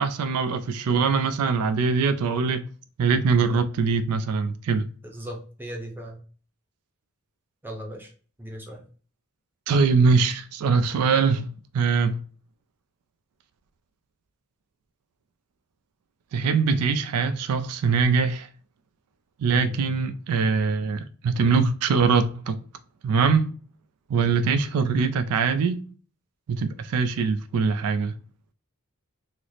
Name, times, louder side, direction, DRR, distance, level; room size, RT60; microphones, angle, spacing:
voice 1, 0.0-2.6 3.0-4.9 9.7-11.5 11.7-12.2 16.3-18.5 19.4-22.6 23.0-23.5 24.1-25.8 26.5-28.1, right 5 dB, 75° right, 0.3 m, -22 dB
voice 2, 5.0-6.2 7.6-8.1 8.4-8.8 19.4-20.1, equal, 10° right, 0.7 m, -38 dB
3.1 x 2.0 x 3.9 m
head